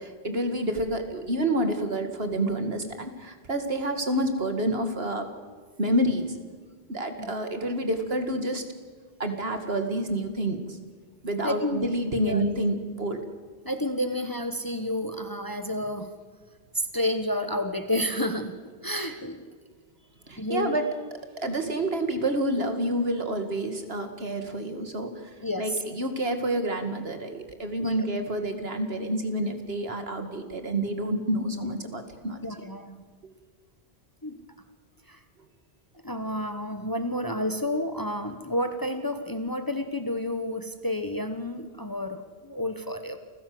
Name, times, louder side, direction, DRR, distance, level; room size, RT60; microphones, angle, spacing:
voice 1, 0.0-5.3 5.8-6.4 6.9-8.6 9.2-10.8 11.2-13.2 20.3-20.8 21.4-25.1 25.6-32.5, right 1 dB, 70° right, 7 dB, 2.5 m, -28 dB
voice 2, 11.4-11.9 12.2-12.4 13.6-16.1 16.7-18.6 18.8-19.4 20.4-20.8 25.4-25.8 27.8-28.1 32.4-33.0 34.2-34.4 35.1-35.2 36.0-43.2, left 1 dB, 20° left, 8 dB, 1.3 m, -30 dB
28.5 x 15.5 x 7.9 m, 1.5 s
omnidirectional pair, 1.1 m